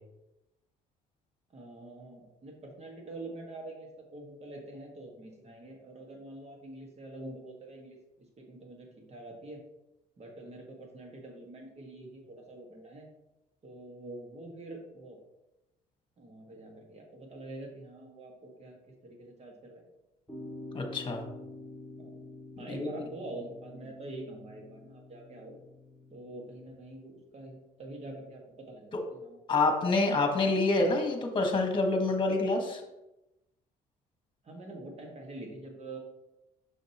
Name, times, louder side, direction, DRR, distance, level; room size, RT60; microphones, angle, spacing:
voice 1, 1.5-8.0 8.4-9.6 10.2-13.1 13.6-15.2 16.2-18.8 19.0-19.8 22.0-22.2 22.5-25.6 26.1-28.4 28.7-29.4 34.4-36.0, right 2 dB, 40° right, 1 dB, 1.7 m, -45 dB
sound 1, 20.3-26.7, left 2 dB, ahead, 2.1 m, -47 dB
voice 2, 20.7-21.2 22.7-22.9 28.9-29.0 29.5-32.8, left 3 dB, 30° left, 3 dB, 1.5 m, -27 dB
6.5 x 6.4 x 3.0 m, 0.94 s
cardioid pair, 110°, 17 cm